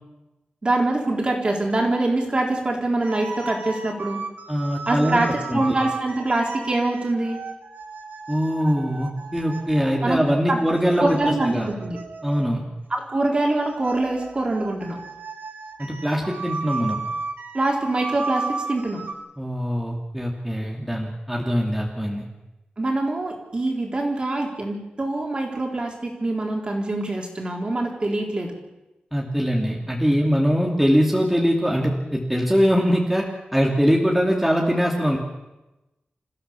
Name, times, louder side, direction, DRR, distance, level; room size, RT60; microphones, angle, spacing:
voice 1, 0.6-4.2 4.9-7.4 10.0-10.2 10.5-10.6 11.0-12.0 12.9-15.0 17.5-19.0 22.8-28.5, right 2 dB, 30° right, 0 dB, 3.9 m, -24 dB
sound 1, 3.0-12.6 13.3-19.1, right 4 dB, 80° right, 2.3 m, -35 dB
voice 2, 4.5-5.8 8.3-11.7 12.2-12.6 15.8-17.0 19.4-22.3 29.1-33.2 33.5-35.2, equal, 5° right, -2 dB, 2.6 m, -22 dB
28.5 x 15.0 x 7.0 m, 1.0 s
wide cardioid pair, 150°, 3 cm